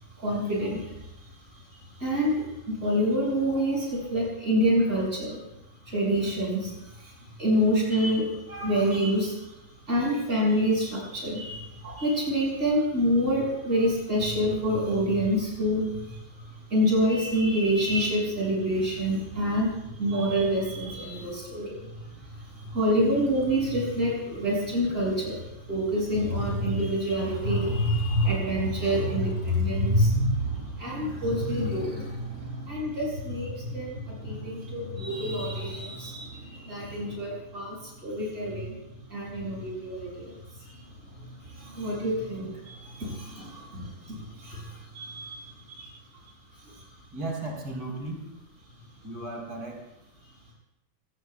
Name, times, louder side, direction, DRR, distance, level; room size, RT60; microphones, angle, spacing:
voice 1, 0.2-1.1 2.0-5.4 5.9-9.5 9.9-38.8 39.1-45.9 46.6-46.8, equal, 35° right, -4 dB, 7.2 m, -27 dB
voice 2, 47.1-48.3 49.0-49.8, right 2 dB, 70° right, -2 dB, 5.3 m, -35 dB
26.5 x 20.0 x 2.4 m, 0.90 s
omnidirectional pair, 2.2 m